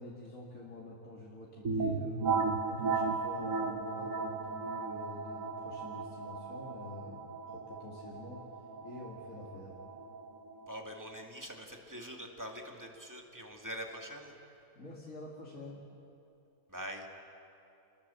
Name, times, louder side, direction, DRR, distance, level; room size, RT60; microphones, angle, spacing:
voice 1, 0.0-8.4 8.8-9.7 14.7-15.8, left 2 dB, 55° left, -4 dB, 2.9 m, -48 dB
sound 1, 1.6-11.2, right 4 dB, 55° right, 1.6 m, -36 dB
voice 2, 10.7-14.3 16.7-17.1, equal, 10° right, 1 dB, 2.3 m, -44 dB
28.5 x 21.0 x 7.2 m, 2.7 s
omnidirectional pair, 1.7 m